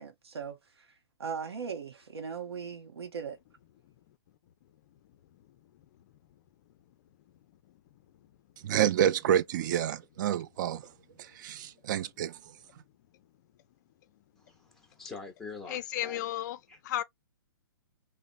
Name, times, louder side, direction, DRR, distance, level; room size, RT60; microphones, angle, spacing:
voice 1, 0.0-3.4, right 6 dB, 90° right, 0.7 m, -39 dB
voice 2, 8.6-10.9 11.2-12.5, right 10 dB, 50° right, 0.3 m, -28 dB
voice 3, 14.4-16.3 16.7-16.8, left 4 dB, 5° left, 0.8 m, -45 dB
voice 4, 15.7-16.6 16.8-17.0, left 13 dB, 45° left, 0.4 m, -33 dB
2.9 x 2.0 x 2.5 m
hypercardioid pair, 135°, 13 cm